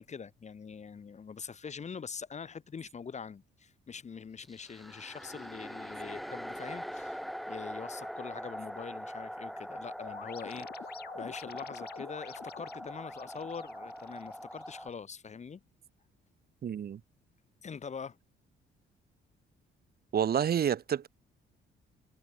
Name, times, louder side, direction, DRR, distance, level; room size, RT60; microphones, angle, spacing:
voice 1, 0.0-7.2 7.5-10.9 11.1-15.6 17.6-18.2, left 6 dB, 35° left, 1.1 m, -44 dB
sound 1, 4.4-14.9, equal, ahead, 3.6 m, -42 dB
sound 2, 10.0-15.0, left 9 dB, 55° left, 1.3 m, -49 dB
voice 2, 16.6-17.0 20.1-21.1, right 9 dB, 50° right, 1.1 m, -29 dB
cardioid pair, 90°, 20 cm